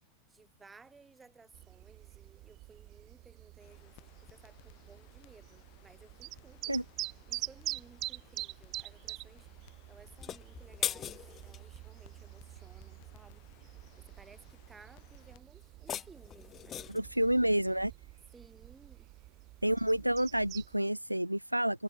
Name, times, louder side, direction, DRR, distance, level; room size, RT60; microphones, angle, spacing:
voice 1, 0.3-6.7 7.3-17.0 18.3-19.1, right 4 dB, 15° right, 2.8 m, -59 dB
sound 1, 1.5-20.8, right 19 dB, 40° right, 0.8 m, -46 dB
Crackle, 3.6-15.4, left 35 dB, 45° left, 5.4 m, -61 dB
sound 2, 10.1-11.7 15.6-17.1, left 10 dB, 25° left, 0.4 m, -39 dB
voice 2, 16.9-17.9 19.6-21.8, right 1 dB, 90° right, 0.3 m, -29 dB
figure-of-eight pair, 90°, 0 cm